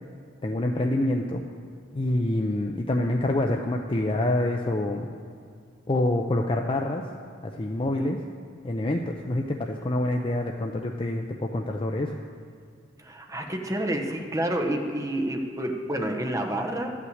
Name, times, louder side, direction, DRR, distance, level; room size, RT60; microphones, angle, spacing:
voice 1, 0.4-1.4 1.9-5.1 5.9-7.0 7.4-8.2 8.6-12.1, left 1 dB, 25° left, 2 dB, 0.5 m, -26 dB
voice 2, 13.0-16.9, right 1 dB, 15° right, 2 dB, 1.0 m, -29 dB
12.0 x 5.9 x 7.8 m, 2.2 s
head